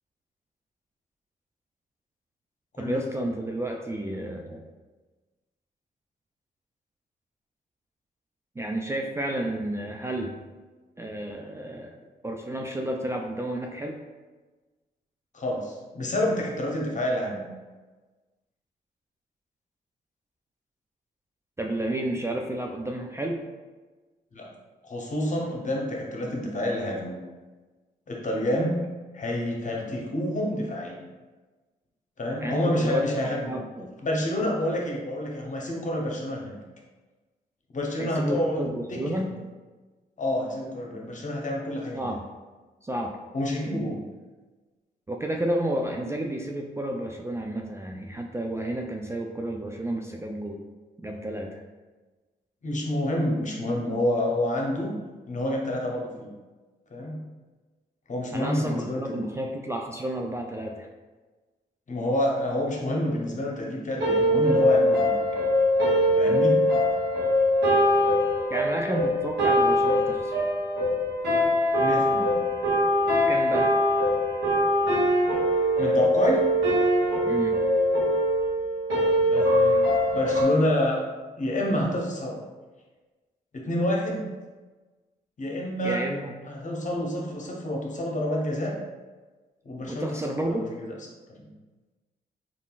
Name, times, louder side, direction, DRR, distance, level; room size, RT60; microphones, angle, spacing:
voice 1, 2.8-4.6 8.6-10.5 11.0-12.0 12.2-14.0 21.6-23.4 32.4-34.0 38.0-39.3 41.9-42.2 42.8-43.2 45.1-50.6 51.0-51.6 58.3-60.9 68.5-70.4 73.3-73.8 77.2-77.6 85.8-86.3 89.9-90.7, right 1 dB, 15° right, 1 dB, 0.3 m, -31 dB
voice 2, 15.3-17.4 24.3-24.5 24.8-27.2 28.1-28.8 29.1-31.0 32.2-33.6 34.0-36.6 37.7-38.6 38.9-39.1 40.2-42.1 43.3-44.0 52.6-54.9 55.3-56.3 56.9-57.2 58.1-59.2 61.9-65.2 66.2-66.6 71.8-72.4 75.8-76.5 79.3-79.8 80.1-81.0 81.3-82.4 83.5-84.3 85.4-86.0 86.5-88.8 89.6-90.2 90.4-90.9 91.4-91.5, left 1 dB, 45° left, -1 dB, 0.8 m, -28 dB
sound 1, 64.0-80.4, equal, 90° right, 1.0 m, -22 dB
3.6 x 2.5 x 2.3 m, 1.3 s
supercardioid pair, 50°, 18 cm